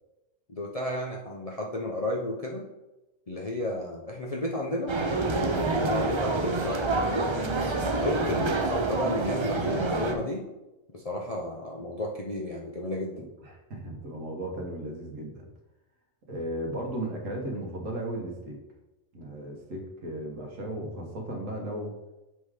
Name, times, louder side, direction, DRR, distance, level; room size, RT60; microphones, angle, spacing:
voice 1, 0.5-2.7 3.3-4.9 5.7-10.5 10.9-13.1, left 1 dB, 40° left, -1 dB, 0.5 m, -33 dB
sound 1, 4.9-10.1, right 2 dB, 50° right, 0.3 m, -27 dB
voice 2, 8.2-8.5 13.4-15.4 16.3-18.6 19.1-21.9, right 1 dB, 70° right, 1 dB, 1.7 m, -35 dB
6.9 x 3.7 x 4.9 m, 1.0 s
omnidirectional pair, 1.4 m